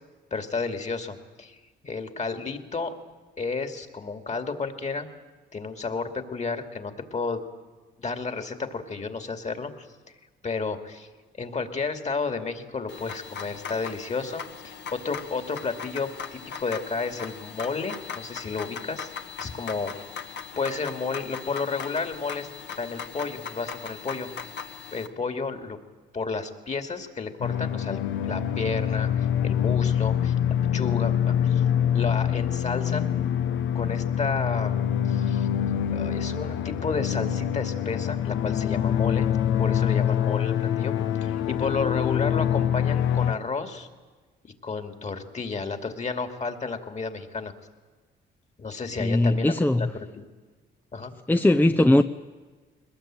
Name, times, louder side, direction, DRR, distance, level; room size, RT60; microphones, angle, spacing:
voice 1, 0.3-2.9 3.4-5.1 5.5-7.4 8.0-9.9 10.4-11.1 11.3-19.1 19.4-19.9 20.6-22.5 22.8-24.3 24.9-25.8 26.1-30.3 30.7-31.6 31.9-33.1 33.7-34.8 35.0-35.5 35.9-39.3 39.6-40.9 41.2-43.9 44.4-47.5 48.6-50.3 50.9-51.1, left 4 dB, 35° left, 8 dB, 2.5 m, -32 dB
sound 1, 12.9-25.1, left 6 dB, 60° left, 1.7 m, -39 dB
sound 2, 27.4-43.3, left 9 dB, 80° left, 1.1 m, -25 dB
voice 2, 49.0-49.9 51.3-52.0, left 1 dB, 10° left, 7 dB, 0.6 m, -19 dB
22.0 x 20.0 x 9.0 m, 1.4 s
cardioid pair, 90°, 20 cm